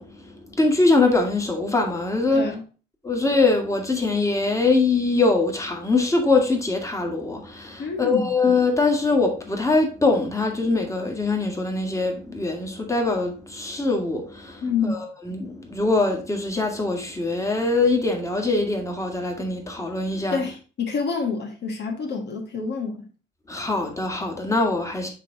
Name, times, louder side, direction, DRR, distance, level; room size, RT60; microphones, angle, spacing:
voice 1, 0.0-2.5 3.0-20.4 23.5-25.1, left 3 dB, 15° left, 1.8 m, -23 dB
voice 2, 2.3-2.6 7.8-8.3 14.6-15.0 20.3-23.1, left 5 dB, 60° left, 1.5 m, -27 dB
8.2 x 3.4 x 4.6 m
cardioid pair, 90°, 20 cm